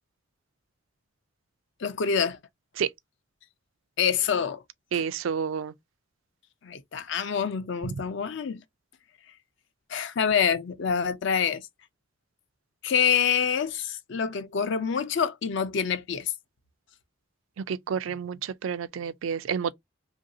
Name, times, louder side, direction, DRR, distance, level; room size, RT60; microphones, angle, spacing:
voice 1, 1.8-2.4 4.0-4.6 4.9-5.0 6.6-8.6 9.9-11.6 12.8-16.3, left 7 dB, 65° left, 0.5 m, -26 dB
voice 2, 4.9-5.7 17.7-19.7, right 7 dB, 80° right, 0.4 m, -29 dB
3.0 x 2.6 x 2.6 m
head